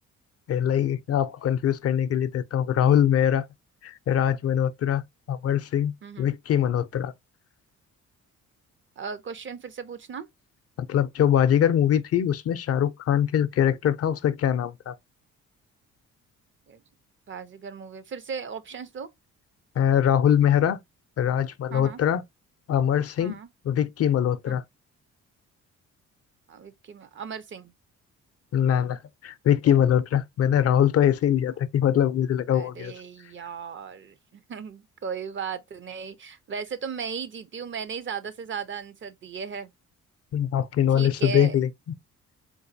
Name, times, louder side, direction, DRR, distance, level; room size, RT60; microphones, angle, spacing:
voice 1, 0.5-3.5 3.8-5.0 5.3-7.1 10.9-14.9 19.8-20.8 21.2-22.2 22.7-23.4 23.6-24.6 28.5-32.9 40.3-41.7, left 9 dB, 50° left, 0.5 m, -23 dB
voice 2, 9.0-10.3 16.7-16.8 17.3-19.1 21.7-22.0 23.2-23.5 24.5-24.6 26.5-27.7 32.5-39.7 40.9-41.6, right 6 dB, 40° right, 0.5 m, -36 dB
3.9 x 2.6 x 2.5 m
cardioid pair, 90°, 30 cm